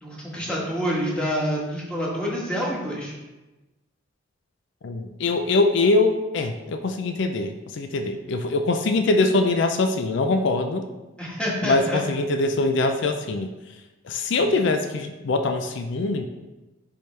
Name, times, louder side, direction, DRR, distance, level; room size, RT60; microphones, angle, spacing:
voice 1, 0.0-3.1 11.2-12.0, equal, 5° left, -5 dB, 1.4 m, -27 dB
voice 2, 4.8-10.9 11.6-13.5 14.0-16.3, left 3 dB, 65° left, 6 dB, 0.4 m, -23 dB
10.0 x 3.5 x 3.2 m, 1.1 s
head